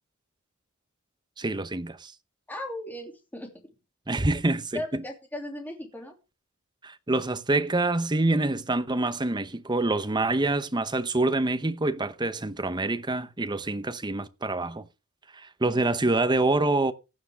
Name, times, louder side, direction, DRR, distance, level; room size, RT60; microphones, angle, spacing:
voice 1, 1.4-2.1 4.1-4.8 6.8-14.8 15.3-16.9, right 2 dB, 20° right, 0.8 m, -26 dB
voice 2, 2.5-3.5 4.7-6.2, left 1 dB, 10° left, 2.8 m, -37 dB
16.0 x 9.4 x 3.5 m
head